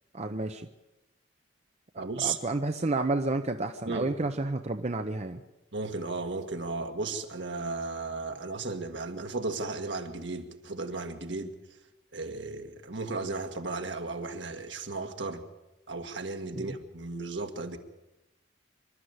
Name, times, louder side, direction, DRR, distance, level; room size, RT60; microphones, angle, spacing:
voice 1, 0.1-0.7 1.9-5.4 16.5-16.7, right 2 dB, 35° right, 0.7 m, -31 dB
voice 2, 2.0-2.4 3.9-4.1 5.7-11.5 12.1-15.4 15.9-17.8, right 3 dB, 70° right, 1.9 m, -35 dB
26.5 x 12.5 x 8.1 m
head